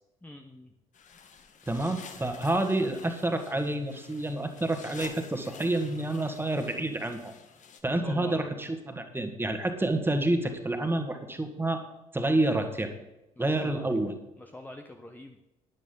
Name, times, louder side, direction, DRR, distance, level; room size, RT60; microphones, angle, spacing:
voice 1, 0.2-0.7 7.9-8.5 13.4-14.0 14.4-15.4, left 1 dB, 10° left, 3 dB, 1.1 m, -45 dB
sound 1, 0.9-7.8, left 6 dB, 40° left, 1.5 m, -50 dB
voice 2, 1.7-7.3 7.8-11.8 12.1-12.9 13.4-14.1, right 2 dB, 10° right, 6 dB, 1.9 m, -28 dB
12.5 x 10.5 x 3.9 m, 0.94 s
figure-of-eight pair, 50°, 18 cm